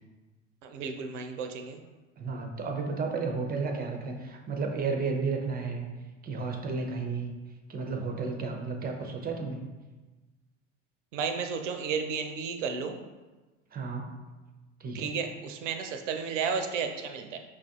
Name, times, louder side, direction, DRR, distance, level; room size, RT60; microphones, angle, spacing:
voice 1, 0.6-1.8 11.1-13.0 14.9-17.4, right 6 dB, 75° right, 6 dB, 0.6 m, -33 dB
voice 2, 2.2-5.9 6.2-7.3 7.7-9.6 13.7-14.1 14.8-15.2, right 4 dB, 25° right, 3 dB, 0.6 m, -32 dB
6.2 x 2.5 x 2.4 m, 1.2 s
hypercardioid pair, 70°, 37 cm